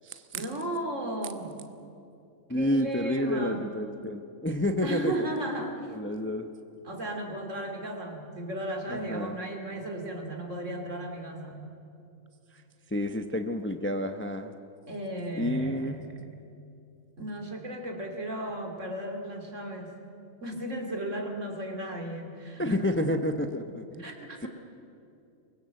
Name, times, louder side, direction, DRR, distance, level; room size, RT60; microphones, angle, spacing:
voice 1, 0.3-1.5 2.5-3.7 4.8-5.9 6.8-11.6 14.9-16.0 17.2-19.9 20.4-22.9 24.0-24.5, right 1 dB, 65° right, 3 dB, 3.2 m, -35 dB
voice 2, 2.5-5.3 5.9-6.5 8.9-9.4 12.9-14.5 15.4-16.0 22.6-24.1, left 1 dB, 10° left, 8 dB, 0.7 m, -29 dB
24.0 x 20.5 x 7.7 m, 2.7 s
omnidirectional pair, 1.4 m